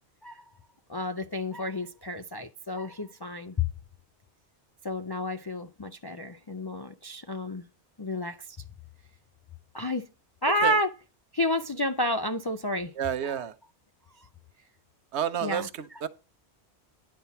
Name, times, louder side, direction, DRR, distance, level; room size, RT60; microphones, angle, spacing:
voice 1, 0.9-3.7 4.8-7.7 8.0-8.4 9.7-10.1 10.4-10.9 11.3-12.9 13.2-13.4 14.2-14.3 15.4-15.7, left 1 dB, 40° left, 0.3 m, -30 dB
voice 2, 13.0-13.5 15.1-16.1, right 9 dB, 75° right, 1.0 m, -30 dB
10.5 x 4.3 x 7.0 m
omnidirectional pair, 1.2 m